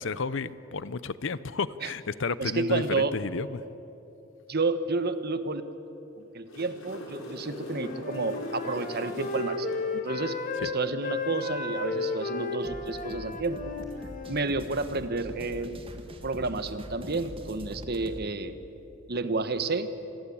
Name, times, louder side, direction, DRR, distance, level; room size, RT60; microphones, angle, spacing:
voice 1, 0.0-3.6 10.6-10.7, left 4 dB, 65° left, 17 dB, 0.7 m, -32 dB
voice 2, 2.4-3.1 4.5-5.6 6.3-13.7 14.3-15.8 16.2-18.6 19.1-19.9, right 3 dB, 50° right, 11 dB, 1.4 m, -30 dB
sound 1, 6.2-9.8 13.7-13.8, left 1 dB, 85° left, 5.2 m, -42 dB
Wind instrument woodwind instrument, 7.6-14.4, left 3 dB, 40° left, 2.3 m, -34 dB
sound 2, 12.6-18.2, equal, 25° right, 1.8 m, -43 dB
27.0 x 21.0 x 8.7 m, 3.0 s
head